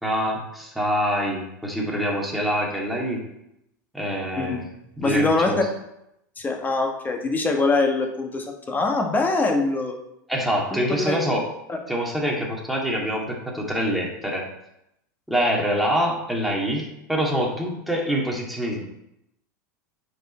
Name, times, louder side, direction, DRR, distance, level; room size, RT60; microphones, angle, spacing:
voice 1, 0.0-3.3 3.9-4.7 5.0-5.6 10.3-11.5 11.9-14.5 15.3-18.8, equal, ahead, -2 dB, 2.2 m, -25 dB
voice 2, 4.3-4.6 5.0-5.5 6.4-10.0 11.0-11.2 11.7-11.8, left 3 dB, 20° left, 3 dB, 1.5 m, -23 dB
8.9 x 4.9 x 4.3 m, 0.83 s
hypercardioid pair, 105°, 10 cm